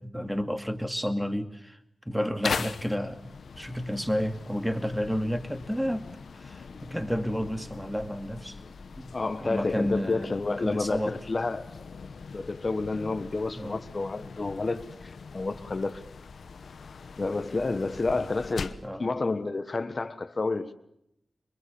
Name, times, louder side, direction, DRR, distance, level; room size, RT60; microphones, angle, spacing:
voice 1, 0.0-1.8 2.1-6.1 6.3-8.6 9.0-9.2 9.4-11.2 13.6-13.8 18.8-19.1, equal, ahead, 2.4 m, -31 dB
sound 1, 2.4-18.9, left 5 dB, 80° left, 1.0 m, -41 dB
voice 2, 9.1-11.7 12.3-16.0 17.2-20.7, left 3 dB, 50° left, 1.4 m, -30 dB
23.0 x 22.0 x 7.1 m
cardioid pair, 40°, 0 cm